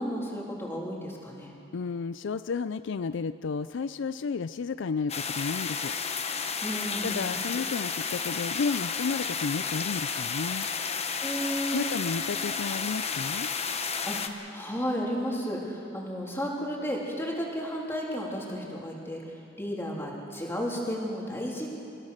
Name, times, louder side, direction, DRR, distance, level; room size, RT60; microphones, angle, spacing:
voice 1, 0.0-1.5 6.6-7.4 11.2-12.0 14.0-19.2 19.6-21.8, equal, 15° left, -3 dB, 3.4 m, -33 dB
voice 2, 1.7-5.9 7.0-10.7 11.7-13.5, left 5 dB, 65° left, 13 dB, 0.4 m, -32 dB
sound 1, 5.1-14.3, left 6 dB, 35° left, 1.1 m, -32 dB
29.0 x 15.5 x 6.6 m, 2.6 s
head